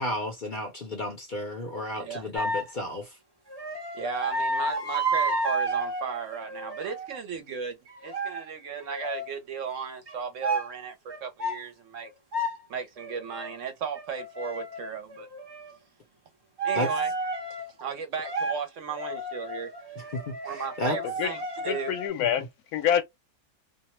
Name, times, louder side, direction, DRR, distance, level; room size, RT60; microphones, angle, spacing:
voice 1, 0.0-3.2 16.7-16.9 20.0-21.0 22.2-22.5, left 1 dB, 50° left, 0.6 m, -33 dB
voice 2, 2.0-2.3 3.9-7.8 8.0-12.1 12.7-15.3 16.6-17.1 17.8-19.7 20.4-22.0, right 6 dB, 65° right, 0.9 m, -35 dB
sound 1, 2.4-2.7 3.5-7.2 7.9-8.5 8.9-9.3 10.1-10.2 10.4-10.7 11.1-11.6 12.0-12.6 13.0-13.5 13.9-15.8 16.6-17.7 18.2-18.6 18.9-22.1, right 2 dB, 30° right, 0.5 m, -31 dB
voice 3, 21.7-22.5 22.7-23.0, left 9 dB, 85° left, 1.1 m, -26 dB
2.6 x 2.1 x 2.9 m
omnidirectional pair, 1.6 m